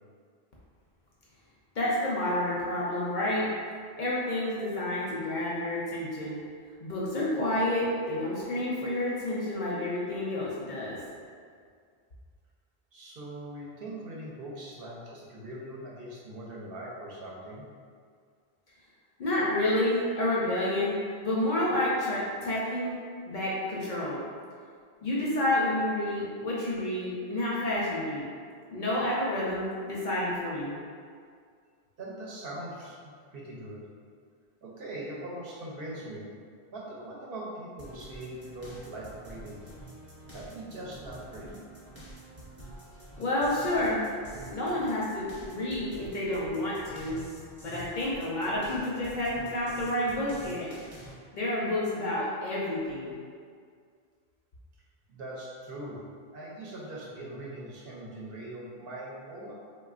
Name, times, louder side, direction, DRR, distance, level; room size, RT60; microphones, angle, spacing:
voice 1, 1.8-3.5 4.0-6.4 6.8-11.0 19.2-21.0 21.2-23.0 23.3-24.2 25.0-28.3 28.7-30.8 43.2-44.0 44.5-47.3 47.6-50.7 51.3-53.1, left 1 dB, 60° left, -6 dB, 0.6 m, -29 dB
voice 2, 12.9-17.7 32.0-33.8 34.6-36.3 36.7-39.6 40.3-41.6 55.1-56.0 56.3-59.6, right 1 dB, 70° right, -5 dB, 0.8 m, -41 dB
sound 1, 37.8-51.1, right 1 dB, 15° right, 0.6 m, -48 dB
3.2 x 2.2 x 2.4 m, 2.1 s
omnidirectional pair, 1.1 m